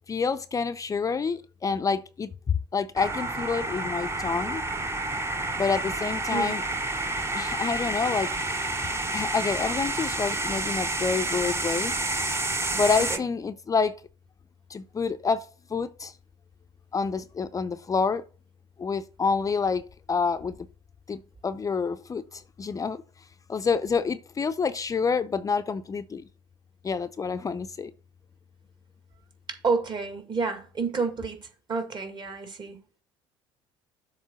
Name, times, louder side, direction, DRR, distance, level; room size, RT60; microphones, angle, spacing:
voice 1, 0.1-2.3 2.7-4.6 5.6-6.6 7.3-8.3 9.1-11.9 12.7-13.9 14.7-15.4 15.7-16.1 16.9-18.2 18.8-19.8 20.1-20.6 21.1-23.0 23.5-26.2 26.8-27.9, left 5 dB, 25° left, 0.6 m, -28 dB
sound 1, 3.0-13.2, right 2 dB, 20° right, 0.9 m, -29 dB
voice 2, 29.5-32.8, right 4 dB, 35° right, 2.0 m, -30 dB
7.2 x 3.8 x 6.2 m
hypercardioid pair, 60°, 13 cm